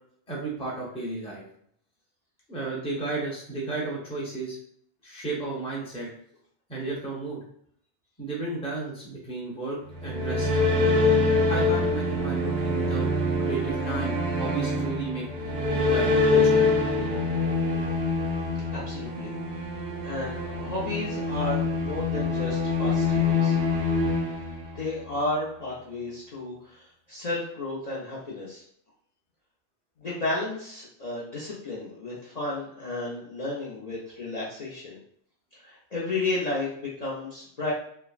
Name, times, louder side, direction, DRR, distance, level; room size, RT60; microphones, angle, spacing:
voice 1, 0.3-1.4 2.5-4.6 5.0-6.1 6.7-7.4 8.2-10.5 11.5-13.1 13.4-15.2 15.8-16.6, right 3 dB, 5° left, -5 dB, 0.6 m, -33 dB
sound 1, 9.9-25.1, left 3 dB, 65° right, 0.7 m, -25 dB
voice 2, 18.7-19.3 19.6-23.6 24.7-28.6 30.0-35.0 35.5-37.7, left 2 dB, 45° left, -7 dB, 0.6 m, -33 dB
3.2 x 2.0 x 2.3 m, 0.66 s
omnidirectional pair, 1.2 m